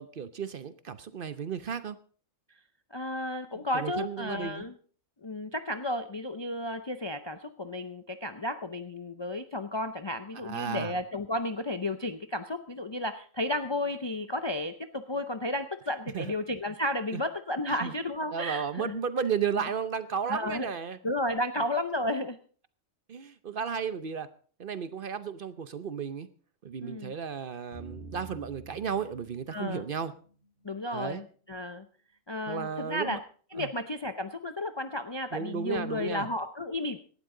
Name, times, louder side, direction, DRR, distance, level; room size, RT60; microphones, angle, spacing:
voice 1, 0.0-2.0 3.7-4.6 10.4-10.9 16.1-16.3 17.1-17.2 17.8-17.9 18.3-21.0 23.1-24.3 24.6-26.3 26.6-30.1 30.9-31.2 32.5-33.2 33.6-33.7 35.3-36.3, right 7 dB, 50° right, 13 dB, 0.8 m, -34 dB
voice 2, 2.9-4.7 5.2-19.0 20.3-20.7 21.0-22.4 26.8-27.1 29.5-29.8 30.6-31.9 32.3-33.2 33.5-37.0, left 1 dB, 30° left, 9 dB, 0.6 m, -33 dB
sound 1, 27.7-30.6, right 2 dB, 55° left, 7.0 m, -48 dB
17.5 x 12.0 x 3.8 m, 0.43 s
omnidirectional pair, 1.3 m